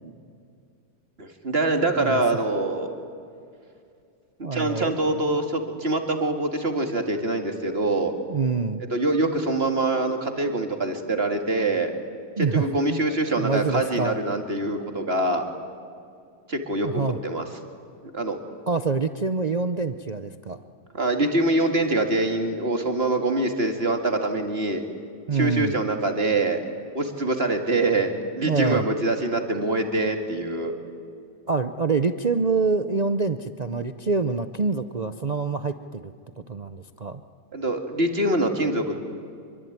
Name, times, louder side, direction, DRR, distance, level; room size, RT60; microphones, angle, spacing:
voice 1, 1.2-2.9 4.4-8.1 8.9-11.9 12.4-15.5 16.5-17.4 18.1-18.4 20.9-24.8 25.3-26.6 26.9-30.7 37.5-39.0, right 2 dB, 35° right, 5 dB, 2.4 m, -24 dB
voice 2, 4.4-5.4 8.3-8.9 12.4-13.0 13.4-14.2 16.8-17.2 18.7-20.6 25.3-25.7 28.4-28.8 31.5-36.1 36.5-37.2, right 4 dB, 70° right, 9 dB, 0.4 m, -26 dB
26.0 x 23.5 x 9.5 m, 2.3 s
omnidirectional pair, 1.9 m